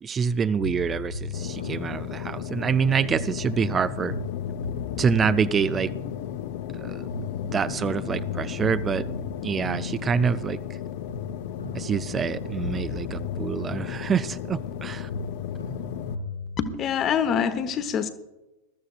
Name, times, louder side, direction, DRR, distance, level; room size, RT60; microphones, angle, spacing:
voice 1, 0.0-4.1 5.0-5.9 6.8-7.1 7.4-9.1 9.4-10.8 11.7-15.1, right 6 dB, 20° right, 14 dB, 0.4 m, -26 dB
sound 1, 0.6-2.7 3.1-6.8 7.1-10.7 11.1-14.8 15.1-16.7, left 3 dB, 90° left, 5.5 m, -37 dB
sound 2, 1.3-16.2, left 10 dB, 50° left, 0.8 m, -35 dB
voice 2, 16.6-18.1, left 7 dB, 30° left, 11 dB, 1.2 m, -25 dB
21.0 x 14.0 x 2.4 m, 1.0 s
figure-of-eight pair, 90°, 0 cm